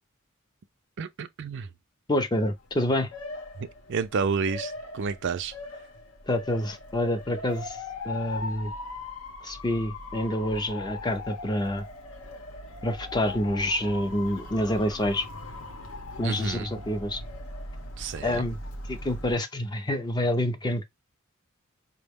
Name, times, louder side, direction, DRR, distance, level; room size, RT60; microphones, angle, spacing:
voice 1, 1.0-1.7 3.6-5.5 16.2-16.7 18.0-18.5, right 5 dB, 60° right, 0.4 m, -30 dB
voice 2, 2.1-3.1 6.3-7.8 8.0-8.7 9.4-11.8 12.8-15.3 16.2-17.2 18.2-18.6 18.9-20.8, left 1 dB, 20° left, 0.5 m, -27 dB
Motor vehicle (road) / Siren, 2.6-19.4, left 2 dB, 75° left, 0.8 m, -40 dB
4.6 x 2.1 x 3.5 m
head